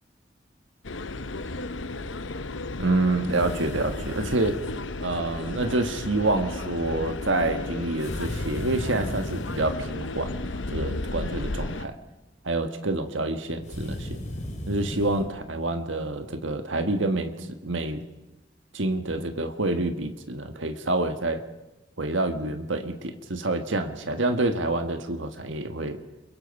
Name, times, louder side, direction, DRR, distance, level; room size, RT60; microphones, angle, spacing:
sound 1, 0.8-11.9, left 2 dB, 80° left, 1.0 m, -34 dB
voice 1, 2.8-4.6 5.0-11.9 12.4-14.2 14.7-18.0 18.7-21.4 22.0-26.0, right 2 dB, 85° right, 7 dB, 1.6 m, -27 dB
sound 2, 3.3-4.8 8.0-9.8 13.6-15.3, equal, 40° left, 2.8 m, -36 dB
29.5 x 22.0 x 5.4 m, 0.98 s
head